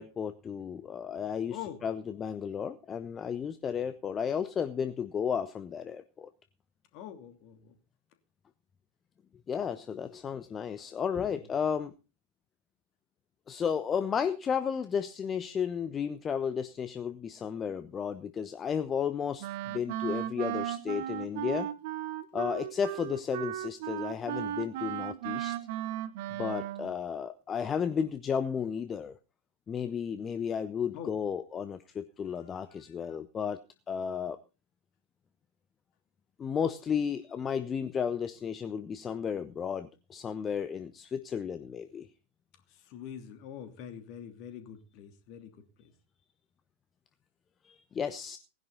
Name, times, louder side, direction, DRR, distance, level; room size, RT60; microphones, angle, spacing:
voice 1, 0.0-6.3 9.5-11.9 13.5-21.7 22.3-25.6 26.3-29.2 29.7-33.6 33.9-34.4 36.4-42.1 47.6-48.4, left 7 dB, 20° left, 12 dB, 1.0 m, -33 dB
voice 2, 1.5-1.8 6.9-7.8 11.2-11.3 30.9-31.1 32.3-33.2 42.7-45.9, left 9 dB, 40° left, 7 dB, 2.9 m, -45 dB
Wind instrument woodwind instrument, 19.4-26.9, right 12 dB, 50° right, 1.2 m, -36 dB
19.0 x 11.0 x 4.0 m, 0.32 s
figure-of-eight pair, 90°, 0 cm